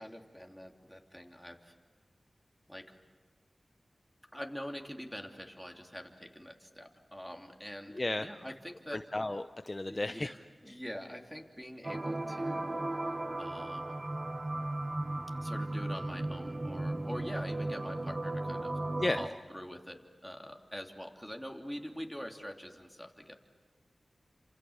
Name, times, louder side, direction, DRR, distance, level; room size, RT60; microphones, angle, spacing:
voice 1, 0.0-1.7 2.7-2.9 4.3-8.0 8.2-9.0 9.9-10.4 10.6-12.8 13.4-14.0 15.4-18.8 19.2-23.3, equal, ahead, 2 dB, 3.0 m, -44 dB
voice 2, 7.9-8.3 8.9-10.3 19.0-19.2, left 2 dB, 35° left, 8 dB, 0.8 m, -33 dB
sound 1, 11.8-19.3, right 2 dB, 40° right, 1.2 m, -36 dB
29.5 x 27.0 x 7.2 m, 1.4 s
wide cardioid pair, 60°, 0 cm